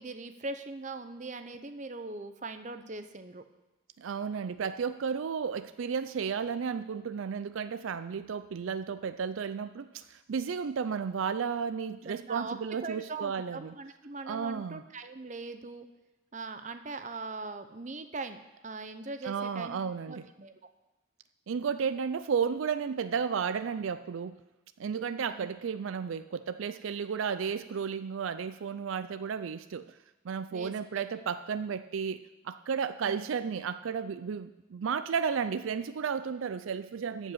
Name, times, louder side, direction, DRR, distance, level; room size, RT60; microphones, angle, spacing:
voice 1, 0.0-3.4 11.9-15.9 16.3-20.6 25.2-25.5 30.5-31.0 33.0-33.3, right 3 dB, 35° right, 8 dB, 0.7 m, -41 dB
voice 2, 4.0-13.7 14.3-14.8 19.2-20.3 21.5-24.4 24.8-30.0 30.2-37.3, right 6 dB, 75° right, 12 dB, 0.4 m, -33 dB
14.0 x 5.2 x 8.5 m, 1.0 s
head